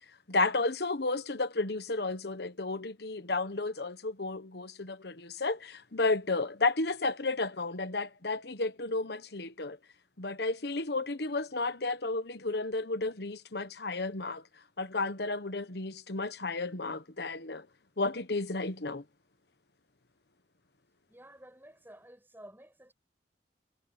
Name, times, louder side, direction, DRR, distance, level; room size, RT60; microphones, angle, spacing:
voice 1, 0.3-9.8 10.2-14.4 14.8-17.7 18.0-19.0, left 3 dB, 60° left, 1.2 m, -32 dB
voice 2, 21.1-22.9, right 1 dB, 10° right, 7.4 m, -52 dB
head